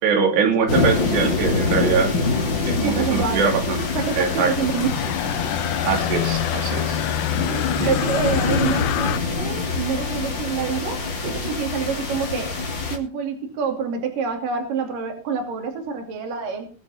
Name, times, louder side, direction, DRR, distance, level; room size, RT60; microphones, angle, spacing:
voice 1, 0.0-2.1 2.7-3.9 4.1-4.5 5.8-7.0 7.8-7.9, right 6 dB, 85° right, 4 dB, 4.9 m, -22 dB
sound 1, 0.7-13.0, left 4 dB, 30° left, 2.7 m, -25 dB
voice 2, 2.8-3.6 3.9-5.0 7.5-12.6 12.9-16.7, right 6 dB, 55° right, 5 dB, 4.2 m, -27 dB
sound 2, 3.8-9.2, left 13 dB, 90° left, 1.7 m, -27 dB
22.0 x 8.5 x 4.3 m, 0.32 s
omnidirectional pair, 4.7 m